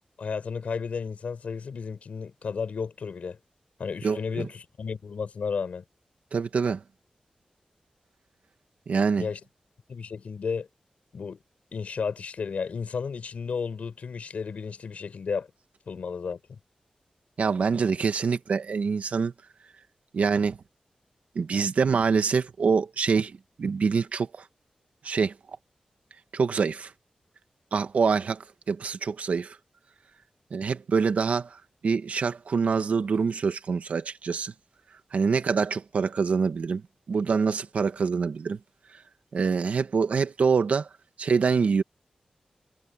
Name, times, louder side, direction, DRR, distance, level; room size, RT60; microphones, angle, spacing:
voice 1, 0.2-3.4 3.8-5.8 9.2-9.4 9.9-10.7 11.1-11.4 11.7-15.5 15.9-16.6, left 5 dB, 80° left, 4.6 m, -33 dB
voice 2, 4.0-4.5 6.3-6.8 8.9-9.3 17.4-19.3 20.1-20.6 21.3-24.4 25.0-25.3 26.3-26.9 27.7-29.6 30.5-31.6 31.8-34.5 35.1-36.8 37.1-38.6 39.3-40.9 41.2-41.8, right 5 dB, 75° right, 1.6 m, -25 dB
wide cardioid pair, 120°, 2 cm